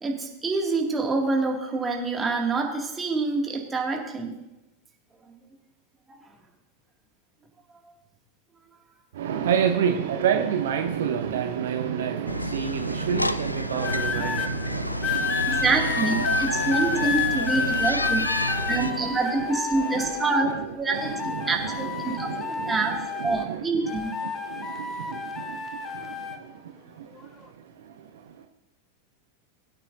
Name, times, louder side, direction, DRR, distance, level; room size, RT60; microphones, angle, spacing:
voice 1, 0.0-4.4 6.1-6.2 15.5-18.3 18.7-21.1 21.4-22.9 23.2-24.1, right 3 dB, 15° right, 1 dB, 2.1 m, -26 dB
voice 2, 9.1-28.5, right 8 dB, 60° right, 6 dB, 0.8 m, -31 dB
sound 1, 12.3-18.9, left 1 dB, 85° left, 0.4 m, -30 dB
sound 2, 13.8-14.5 15.0-20.5 20.9-23.6 23.9-26.4 27.2-27.4, left 5 dB, 25° left, 1.2 m, -30 dB
20.5 x 9.0 x 2.6 m, 0.98 s
figure-of-eight pair, 90°, 0 cm